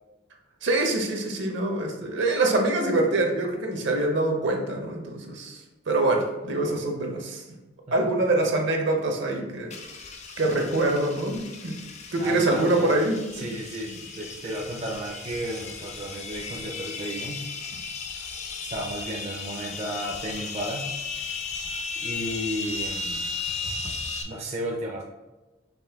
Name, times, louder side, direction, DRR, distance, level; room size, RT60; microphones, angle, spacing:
voice 1, 0.6-5.6 5.9-7.4 7.9-9.7 10.4-11.8 12.1-13.5, right 2 dB, 65° right, 2 dB, 0.8 m, -25 dB
sound 1, 9.7-24.2, left 4 dB, 35° left, 0.4 m, -35 dB
voice 2, 12.2-13.0 13.3-17.4 18.7-20.9 22.0-23.2 24.2-25.0, right 1 dB, 35° right, -2 dB, 0.5 m, -33 dB
5.3 x 2.5 x 3.5 m, 1.1 s
head